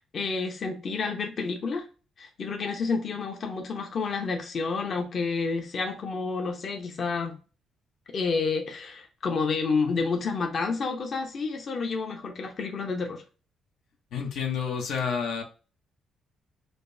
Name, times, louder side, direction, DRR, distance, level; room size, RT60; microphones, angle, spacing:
voice 1, 0.0-1.8 2.2-7.3 8.1-13.2, left 4 dB, 50° left, 0.7 m, -29 dB
voice 2, 14.1-15.4, left 6 dB, 80° left, 0.8 m, -29 dB
5.0 x 2.1 x 2.6 m
cardioid pair, 90°, 0 cm